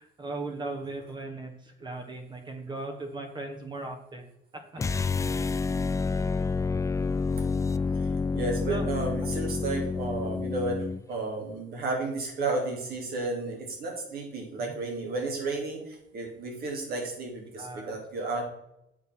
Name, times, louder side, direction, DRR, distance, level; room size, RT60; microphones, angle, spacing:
voice 1, 0.0-4.2 4.7-4.8 8.7-8.8 17.6-18.0, right 2 dB, 25° right, 4 dB, 1.4 m, -37 dB
sound 1, 4.8-11.0, left 4 dB, 20° left, 0.4 m, -29 dB
voice 2, 8.0-18.4, right 3 dB, 65° right, 1 dB, 3.2 m, -33 dB
8.2 x 5.6 x 6.1 m, 0.82 s
cardioid pair, 110°, 17 cm